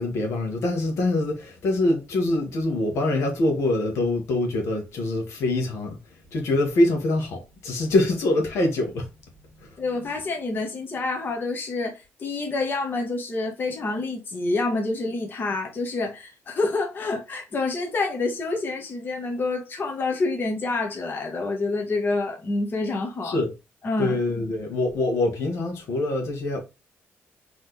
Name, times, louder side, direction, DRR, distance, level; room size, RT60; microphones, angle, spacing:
voice 1, 0.0-6.0 6.3-9.1 9.6-9.8 23.2-23.5 24.0-26.6, left 2 dB, 80° left, 1.4 m, -24 dB
voice 2, 9.8-23.4 23.8-24.2, left 3 dB, 45° left, 1.2 m, -27 dB
4.0 x 3.1 x 3.3 m
cardioid pair, 95°, 5 cm